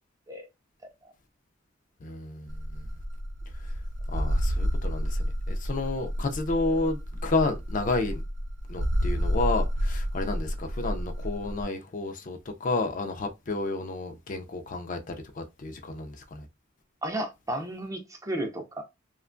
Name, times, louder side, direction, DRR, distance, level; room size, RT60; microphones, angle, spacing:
voice 1, 2.0-2.8 4.1-8.2 8.7-16.5, left 2 dB, 40° left, 0.4 m, -31 dB
sound 1, 2.5-11.6, equal, 65° right, 0.5 m, -30 dB
voice 2, 17.0-18.8, right 1 dB, 15° right, 0.4 m, -33 dB
2.8 x 2.2 x 2.5 m
head